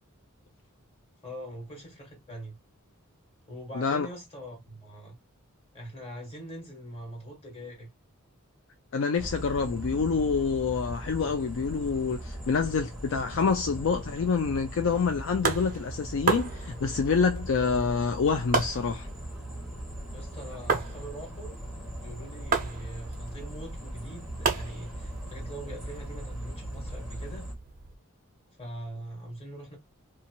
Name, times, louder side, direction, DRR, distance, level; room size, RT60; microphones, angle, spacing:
voice 1, 1.2-2.6 3.5-5.2 5.7-7.9 17.5-17.9 20.1-21.6 22.0-27.5 28.6-29.8, equal, 25° left, 1.4 m, -43 dB
voice 2, 3.8-4.1 8.9-19.1, left 5 dB, 60° left, 0.4 m, -27 dB
sound 1, 9.2-27.5, right 1 dB, ahead, 0.9 m, -39 dB
sound 2, 14.9-28.0, right 4 dB, 40° right, 0.6 m, -35 dB
2.7 x 2.4 x 2.8 m
head